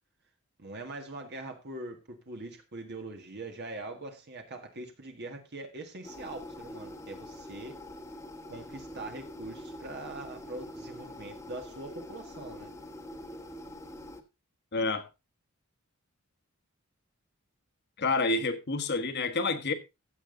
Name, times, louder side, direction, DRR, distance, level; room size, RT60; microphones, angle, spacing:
voice 1, 0.6-7.7 8.5-12.7, right 2 dB, 50° right, 1.8 m, -42 dB
sound 1, 6.0-14.2, left 1 dB, 15° left, 1.4 m, -45 dB
voice 2, 14.7-15.1 18.0-19.7, left 3 dB, 50° left, 1.5 m, -28 dB
15.5 x 7.2 x 3.9 m
head